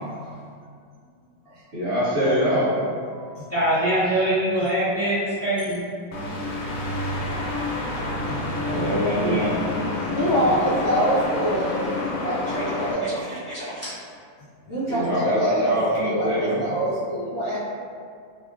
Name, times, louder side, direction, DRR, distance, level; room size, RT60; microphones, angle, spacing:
voice 1, 1.7-2.8 8.7-9.6 14.9-16.7, equal, 60° right, -10 dB, 1.1 m, -24 dB
voice 2, 3.5-5.8 9.2-9.4 13.8-13.9, right 1 dB, 15° left, -13 dB, 0.7 m, -23 dB
sound 1, 6.1-12.9, left 2 dB, 85° left, 1.1 m, -28 dB
voice 3, 9.9-13.8 14.7-17.6, right 1 dB, 60° left, -9 dB, 1.0 m, -25 dB
3.5 x 2.3 x 2.4 m, 2.2 s
omnidirectional pair, 1.5 m